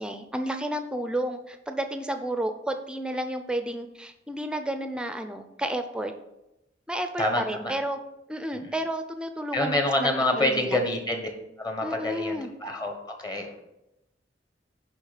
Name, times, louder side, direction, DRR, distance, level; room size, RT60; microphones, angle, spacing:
voice 1, 0.0-6.1 6.9-8.0 8.3-10.8 11.8-12.5, right 1 dB, 5° right, 7 dB, 0.6 m, -31 dB
voice 2, 7.2-7.7 8.5-8.7 9.5-11.3 11.6-12.9 13.2-13.6, left 1 dB, 20° left, 4 dB, 1.2 m, -27 dB
10.5 x 3.6 x 6.6 m, 0.91 s
head